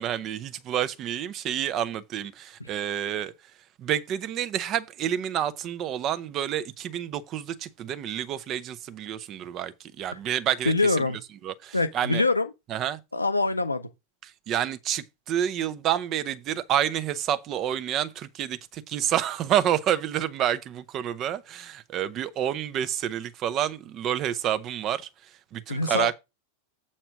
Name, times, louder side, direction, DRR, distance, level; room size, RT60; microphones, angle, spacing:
voice 1, 0.0-3.3 3.8-11.0 11.4-12.2 12.7-13.0 14.5-25.1 25.5-26.2, right 10 dB, 35° right, 0.8 m, -29 dB
voice 2, 10.6-11.2 11.7-12.5 13.1-13.9 25.7-26.2, left 3 dB, 80° left, 0.8 m, -24 dB
8.0 x 4.3 x 6.1 m
figure-of-eight pair, 90°, 0 cm